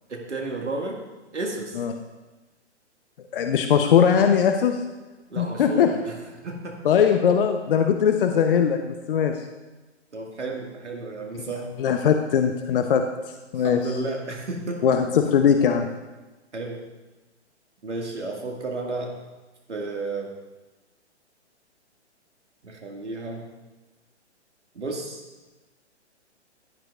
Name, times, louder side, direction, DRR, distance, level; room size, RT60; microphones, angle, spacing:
voice 1, 0.1-1.0 1.3-1.8 5.3-6.1 6.4-7.0 10.1-11.7 13.5-14.9 16.5-16.8 17.8-19.1 19.7-20.3 22.6-23.4 24.7-25.2, right 2 dB, 75° right, 0 dB, 2.0 m, -32 dB
voice 2, 3.3-4.8 5.4-5.9 6.8-9.4 11.8-13.0 13.5-13.8 14.8-15.9, left 7 dB, 50° left, 6 dB, 0.8 m, -20 dB
16.0 x 11.0 x 2.4 m, 1.1 s
figure-of-eight pair, 125°, 35 cm